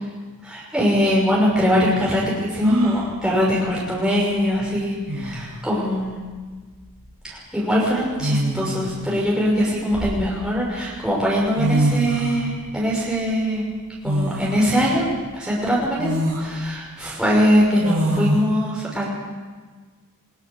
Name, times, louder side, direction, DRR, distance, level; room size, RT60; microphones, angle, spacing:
voice 1, 0.4-6.2 7.3-13.6 14.0-15.1 15.3-19.1, equal, 5° right, -6 dB, 6.1 m, -22 dB
sound 1, 2.6-3.1 4.6-4.7 5.1-5.6 6.9-7.1 8.2-9.0 9.6-10.6 11.3-11.4 11.6-12.4 14.0-14.6 15.2-15.3 16.0-16.5 17.8-18.4, right 1 dB, 75° right, 6.2 m, -24 dB
23.5 x 21.5 x 6.9 m, 1.4 s
head